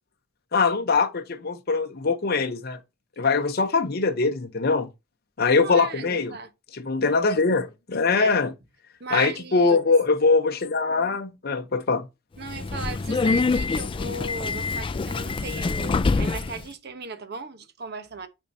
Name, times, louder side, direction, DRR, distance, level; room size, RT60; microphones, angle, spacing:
voice 1, 0.5-2.8 3.2-4.9 5.4-6.3 6.7-8.5 9.1-12.1, left 4 dB, 55° left, 0.8 m, -22 dB
voice 2, 5.6-6.5 8.2-8.4 9.0-9.8 12.4-18.3, right 4 dB, 55° right, 1.1 m, -36 dB
Subway metro underground, 12.4-16.6, left 4 dB, 25° left, 0.4 m, -25 dB
8.7 x 5.2 x 2.7 m
head